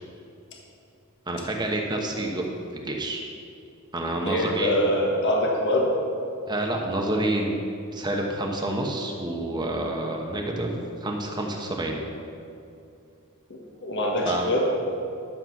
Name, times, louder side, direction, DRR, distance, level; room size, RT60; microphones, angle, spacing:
voice 1, 1.3-2.4 2.7-3.3 3.9-4.7 6.5-7.6 7.9-12.0 14.3-14.5, right 1 dB, 20° right, 0 dB, 1.1 m, -28 dB
voice 2, 4.2-5.9 13.5-14.7, left 1 dB, 55° left, -1 dB, 1.5 m, -24 dB
12.0 x 7.6 x 6.0 m, 2.6 s
head